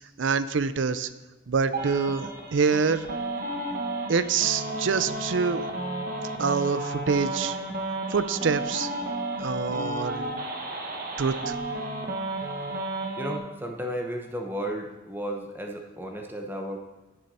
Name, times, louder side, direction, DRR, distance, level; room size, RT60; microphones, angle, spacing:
voice 1, 0.2-1.1 1.5-3.1 4.1-5.7 6.4-7.6 8.1-8.9 9.4-10.3 11.2-11.6, right 5 dB, 75° right, 14 dB, 0.5 m, -26 dB
sound 1, 1.7-13.4, right 2 dB, 45° right, 1.3 m, -32 dB
voice 2, 13.2-16.8, equal, 10° right, 2 dB, 0.9 m, -33 dB
9.7 x 6.9 x 5.4 m, 1.1 s
head